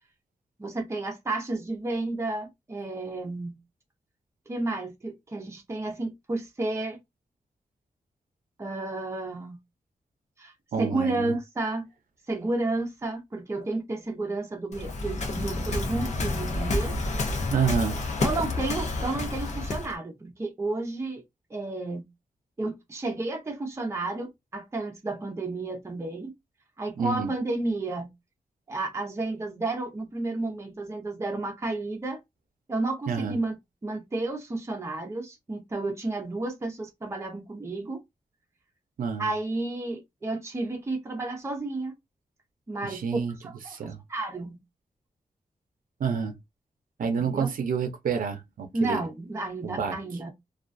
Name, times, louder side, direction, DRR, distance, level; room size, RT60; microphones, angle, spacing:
voice 1, 0.6-3.6 4.5-7.0 8.6-9.6 10.4-10.5 10.8-11.9 12.3-17.0 18.2-21.2 21.5-22.0 22.6-26.3 26.8-28.1 28.7-32.2 32.7-33.6 33.8-38.0 39.2-41.9 42.7-43.0 43.4-44.6 47.2-47.5 48.7-50.3, right 2 dB, 20° right, 0.6 m, -31 dB
voice 2, 10.7-11.3 17.5-18.0 27.0-27.3 33.1-33.4 39.0-39.3 42.8-43.4 43.7-44.0 46.0-46.4 47.0-49.0 49.6-50.0, right 6 dB, 75° right, 0.5 m, -28 dB
Waves surf, 14.7-20.0, left 2 dB, 55° left, 0.6 m, -29 dB
2.3 x 2.3 x 2.5 m
wide cardioid pair, 170°, 14 cm